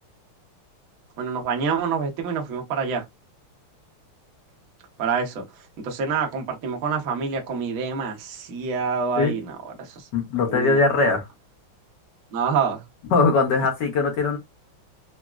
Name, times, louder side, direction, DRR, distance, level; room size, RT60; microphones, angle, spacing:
voice 1, 1.2-3.0 5.0-5.4 5.8-10.1 10.5-10.8 12.3-12.8, right 5 dB, 55° right, 1.0 m, -27 dB
voice 2, 10.1-11.2 13.1-14.4, left 3 dB, 60° left, 1.4 m, -20 dB
4.0 x 2.0 x 2.3 m
omnidirectional pair, 2.4 m